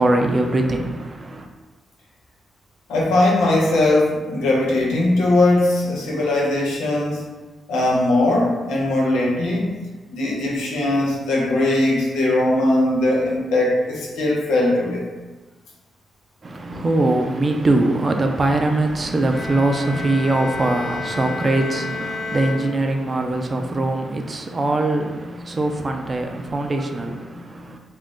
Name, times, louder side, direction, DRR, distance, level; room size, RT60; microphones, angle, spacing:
voice 1, 0.0-1.4 16.4-27.8, right 2 dB, 40° right, 0.4 m, -22 dB
voice 2, 2.9-7.3 7.7-9.7 10.1-15.0, left 2 dB, 90° left, 0.7 m, -19 dB
Bowed string instrument, 19.2-23.3, left 3 dB, 35° left, 0.9 m, -31 dB
2.5 x 2.3 x 3.6 m
supercardioid pair, 55°, 0 cm